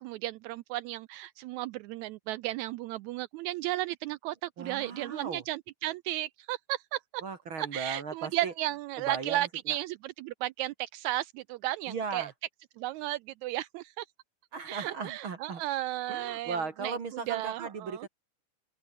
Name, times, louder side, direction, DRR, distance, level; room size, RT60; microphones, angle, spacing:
voice 1, 0.0-7.2 7.6-12.3 12.8-14.1 14.7-18.1, right 15 dB, 85° right, 1.6 m, -34 dB
voice 2, 4.6-5.4 7.2-8.5 9.0-9.8 11.9-12.3 14.5-15.6 16.1-18.1, right 5 dB, 40° right, 2.4 m, -37 dB
open air
omnidirectional pair, 3.8 m